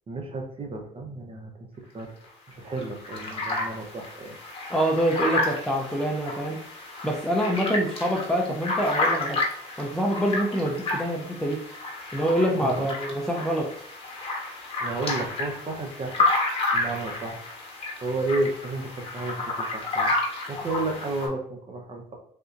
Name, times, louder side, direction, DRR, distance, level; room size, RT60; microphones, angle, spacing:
voice 1, 0.1-1.7 1.9-2.1 2.5-4.4 12.6-12.9 14.8-16.3 16.7-17.4 18.0-20.1 20.5-22.2, right 2 dB, 35° right, 2 dB, 0.7 m, -32 dB
sound 1, 2.0-2.1 2.5-2.6 2.8-21.3, left 2 dB, 35° left, 1.1 m, -30 dB
voice 2, 4.7-6.6 7.0-9.4 9.8-11.6 12.1-13.7, equal, 5° left, 0 dB, 0.5 m, -25 dB
3.5 x 2.7 x 2.5 m, 0.66 s
cardioid pair, 110°, 17 cm